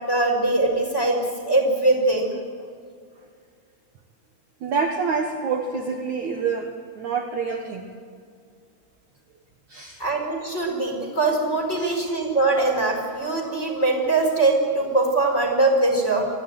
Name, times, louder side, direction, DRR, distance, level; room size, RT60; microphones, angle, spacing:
voice 1, 0.1-2.3 10.0-16.3, right 2 dB, 15° left, 2 dB, 4.4 m, -22 dB
voice 2, 4.6-7.9 9.7-10.0 11.8-12.0, right 5 dB, 70° right, 2 dB, 1.8 m, -27 dB
25.0 x 16.0 x 9.4 m, 2.1 s
omnidirectional pair, 5.7 m